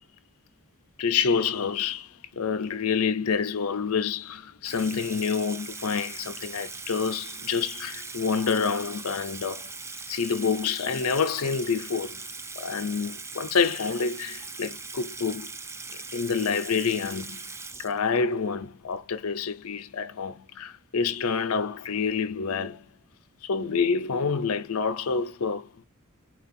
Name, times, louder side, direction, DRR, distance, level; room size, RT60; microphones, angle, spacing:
voice 1, 1.0-9.7 10.1-12.2 12.6-15.5 16.1-17.4 17.8-22.9 23.4-25.8, left 5 dB, 80° left, 0.6 m, -28 dB
Water tap faucet / Sink (filling or washing), 4.6-18.4, right 4 dB, 10° right, 0.4 m, -40 dB
4.5 x 2.4 x 4.2 m
head